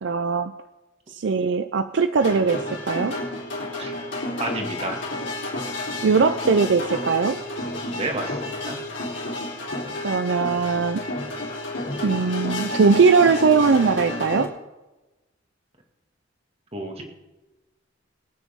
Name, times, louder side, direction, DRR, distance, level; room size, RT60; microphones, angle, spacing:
voice 1, 0.0-0.5 1.1-3.2 6.0-7.4 10.0-11.0 12.0-14.5, right 5 dB, 70° right, 10 dB, 0.5 m, -20 dB
sound 1, 2.2-14.5, left 1 dB, 75° left, 3.6 m, -31 dB
voice 2, 4.4-5.0 7.9-8.8 16.7-17.0, right 2 dB, 30° right, 2 dB, 2.1 m, -31 dB
22.5 x 9.3 x 3.6 m, 1.1 s
head